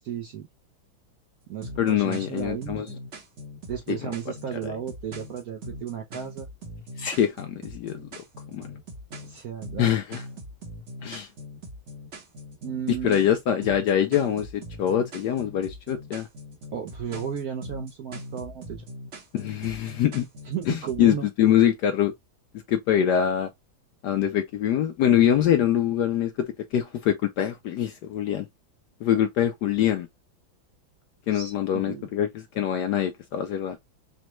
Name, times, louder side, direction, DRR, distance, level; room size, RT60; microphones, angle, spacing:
voice 1, 0.0-0.5 1.5-2.9 3.7-6.5 9.2-10.0 12.6-13.2 16.7-18.9 20.4-21.3 31.3-32.1, right 8 dB, 70° right, 0.9 m, -34 dB
sound 1, 1.6-21.1, equal, 45° right, 1.1 m, -41 dB
voice 2, 1.8-2.9 7.0-8.0 8.5-8.7 9.8-10.2 11.0-11.3 12.9-16.3 19.3-20.3 20.7-22.1 22.7-23.5 24.0-28.5 29.0-30.1 31.3-33.8, left 10 dB, 75° left, 1.0 m, -24 dB
5.1 x 2.2 x 3.0 m
omnidirectional pair, 2.2 m